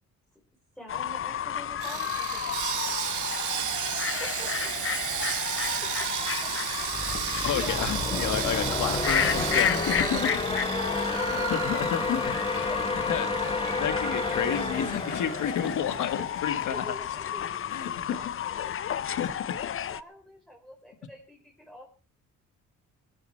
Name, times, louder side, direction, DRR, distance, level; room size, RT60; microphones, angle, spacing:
voice 1, 0.8-3.0 4.2-4.8 5.8-6.5 7.3-7.9 12.7-12.9 15.2-15.7 16.7-21.9, equal, ahead, -2 dB, 4.7 m, -46 dB
Fowl / Bird, 0.9-20.0, left 9 dB, 45° left, 0.6 m, -32 dB
Sawing, 1.8-16.1 16.3-16.5 17.0-17.1, right 11 dB, 75° right, 1.2 m, -34 dB
sound 1, 6.9-16.5, left 3 dB, 20° left, 2.2 m, -31 dB
voice 2, 7.4-10.4 11.4-12.4 13.1-16.9 17.7-18.3 19.0-19.6, left 9 dB, 80° left, 11 dB, 1.7 m, -31 dB
20.5 x 11.0 x 4.5 m, 0.37 s
cardioid pair, 110°, 30 cm